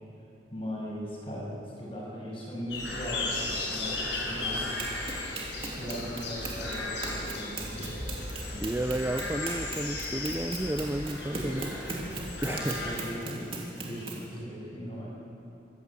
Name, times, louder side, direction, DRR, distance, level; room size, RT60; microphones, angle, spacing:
voice 1, 0.5-4.6 5.7-9.3 12.4-13.5 13.8-15.1, equal, 30° left, -4 dB, 6.6 m, -39 dB
sound 1, 2.7-13.0, left 2 dB, 80° left, 6.4 m, -35 dB
Run, 4.8-14.3, right 2 dB, 30° right, 3.1 m, -39 dB
voice 2, 8.6-11.8 12.4-12.8, right 1 dB, 15° right, 8 dB, 0.4 m, -32 dB
24.5 x 16.0 x 8.4 m, 2.8 s
head